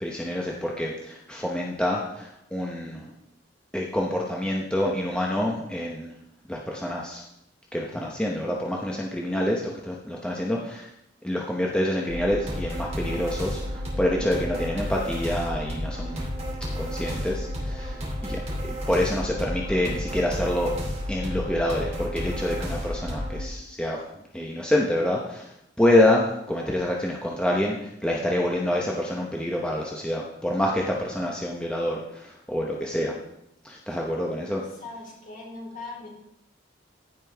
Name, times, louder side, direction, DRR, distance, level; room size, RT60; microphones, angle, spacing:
voice 1, 0.0-3.1 3.7-6.2 6.5-7.2 7.7-10.9 11.2-16.3 16.8-18.4 18.7-20.7 21.1-33.2 33.6-34.6, left 1 dB, 5° left, -2 dB, 0.9 m, -27 dB
sound 1, 12.1-23.4, equal, 35° right, 2.8 m, -32 dB
voice 2, 34.8-36.1, left 3 dB, 50° left, -4 dB, 3.6 m, -39 dB
15.0 x 5.3 x 3.5 m, 0.81 s
head